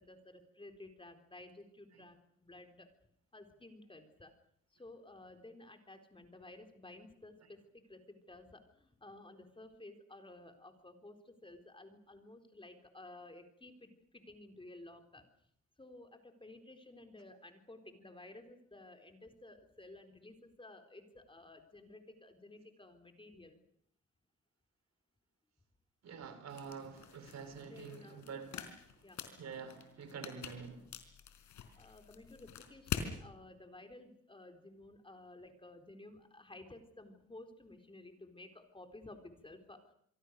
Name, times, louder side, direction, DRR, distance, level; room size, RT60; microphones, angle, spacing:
voice 1, 0.0-2.9 3.3-4.3 4.7-15.3 15.8-23.6 27.6-28.3 29.0-29.2 31.7-39.9, left 2 dB, 15° left, 4.0 m, -54 dB
voice 2, 26.0-28.6 28.9-29.0 29.4-30.9, right 6 dB, 60° right, 4.9 m, -47 dB
sound 1, 26.5-33.1, left 8 dB, 70° left, 4.5 m, -45 dB
27.0 x 23.0 x 6.6 m
cardioid pair, 90°, 30 cm